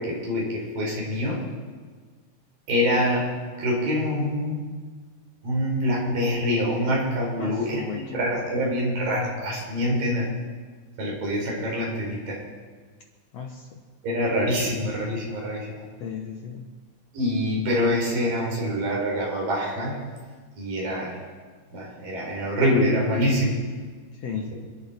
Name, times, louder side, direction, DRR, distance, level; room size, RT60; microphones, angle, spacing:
voice 1, 0.0-1.4 2.7-3.3 3.6-4.6 5.4-10.3 11.0-12.4 14.0-15.8 17.1-20.0 20.6-21.2 21.7-23.7 24.3-24.5, equal, 70° right, -2 dB, 5.8 m, -25 dB
voice 2, 7.4-8.2 13.3-13.8 16.0-16.7 24.1-24.5, left 7 dB, 70° left, 2 dB, 1.6 m, -35 dB
26.5 x 11.0 x 4.3 m, 1.5 s
omnidirectional pair, 4.2 m